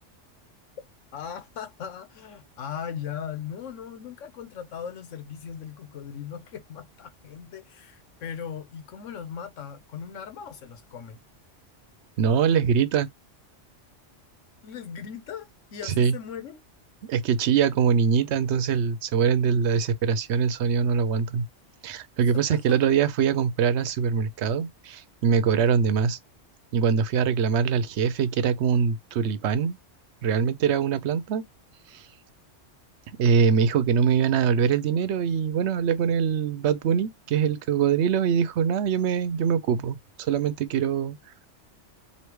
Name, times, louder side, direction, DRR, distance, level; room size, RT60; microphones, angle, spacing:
voice 1, 1.1-11.2 14.6-16.6 22.5-22.8, left 8 dB, 85° left, 1.2 m, -38 dB
voice 2, 12.2-13.1 15.8-16.1 17.0-21.5 21.8-26.2 26.7-29.8 30.2-31.4 31.9-32.0 33.2-41.2, right 7 dB, 70° right, 0.9 m, -23 dB
3.2 x 2.7 x 4.6 m
omnidirectional pair, 1.2 m